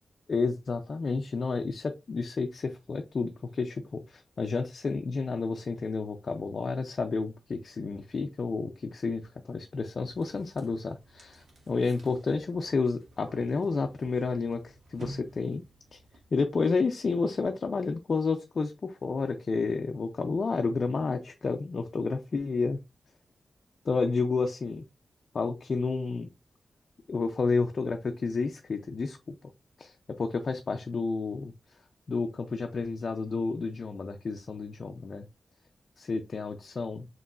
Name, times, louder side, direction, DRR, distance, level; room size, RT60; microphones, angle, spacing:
voice 1, 0.3-9.2 9.5-15.6 15.9-16.0 16.3-22.8 23.9-24.8 25.3-26.3 27.1-29.2 29.8-31.5 32.1-35.3 36.0-37.1, left 4 dB, 45° left, 4 dB, 0.4 m, -30 dB
sound 1, 10.1-16.7, right 1 dB, 70° right, 1.6 m, -50 dB
5.1 x 3.0 x 2.4 m, 0.24 s
wide cardioid pair, 165°, 0 cm